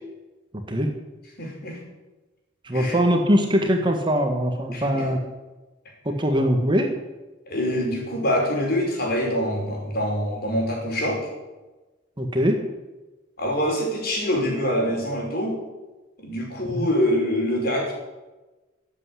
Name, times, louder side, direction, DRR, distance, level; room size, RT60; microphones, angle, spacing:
voice 1, 1.4-1.8 2.7-3.0 4.7-5.1 7.5-11.2 13.4-15.5 16.2-17.9, equal, 50° left, -1 dB, 5.5 m, -25 dB
voice 2, 2.6-5.2 6.0-6.9 12.2-12.6 16.7-16.9, equal, 25° right, 4 dB, 1.7 m, -22 dB
14.5 x 8.3 x 9.7 m, 1.1 s
head